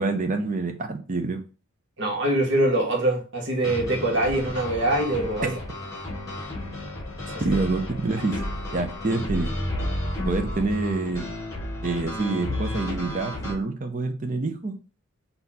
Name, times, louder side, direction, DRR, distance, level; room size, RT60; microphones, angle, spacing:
voice 1, 0.0-1.4 5.4-5.5 7.4-8.4 8.7-9.5 10.3-11.3 11.8-14.8, right 3 dB, 35° right, 6 dB, 0.6 m, -27 dB
voice 2, 2.0-5.6 7.4-7.6, right 1 dB, 55° right, 0 dB, 1.2 m, -24 dB
sound 1, 3.6-13.5, left 1 dB, 15° left, 1.4 m, -32 dB
4.1 x 2.8 x 4.1 m, 0.35 s
head